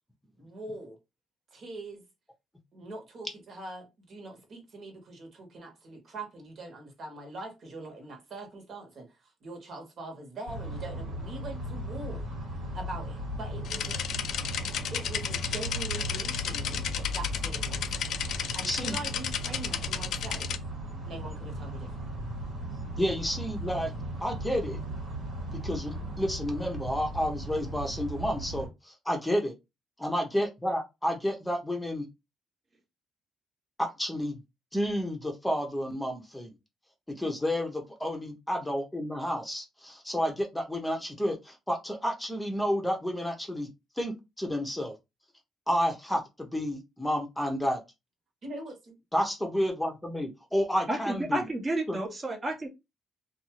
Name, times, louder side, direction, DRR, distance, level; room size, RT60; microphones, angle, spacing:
voice 1, 0.4-1.0 1.5-2.0 2.7-9.2 9.4-12.3 12.7-14.0 14.9-17.8 18.5-20.5 21.0-22.1 48.4-48.9, right 2 dB, 60° right, 1.2 m, -42 dB
sound 1, 10.5-28.7, right 1 dB, 85° right, 1.3 m, -37 dB
sound 2, 13.7-20.6, left 9 dB, 75° left, 0.3 m, -33 dB
voice 2, 18.6-19.0 23.0-23.9 24.2-24.8 25.6-29.5 30.0-32.1 33.8-34.4 34.7-36.5 37.2-43.7 44.0-44.9 45.7-47.8 49.1-51.4 51.9-52.0, equal, 5° left, 0.7 m, -30 dB
voice 3, 50.9-52.7, right 1 dB, 25° right, 0.8 m, -31 dB
2.6 x 2.3 x 3.0 m
cardioid pair, 90°, 0 cm